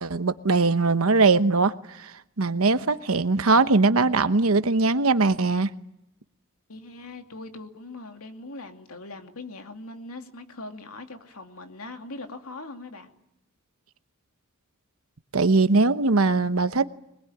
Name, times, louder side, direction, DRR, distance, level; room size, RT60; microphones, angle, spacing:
voice 1, 0.0-2.1 2.4-5.7 15.3-16.9, right 3 dB, 85° right, 1.1 m, -21 dB
voice 2, 6.7-13.1, left 2 dB, 85° left, 2.6 m, -41 dB
23.0 x 21.0 x 9.9 m
head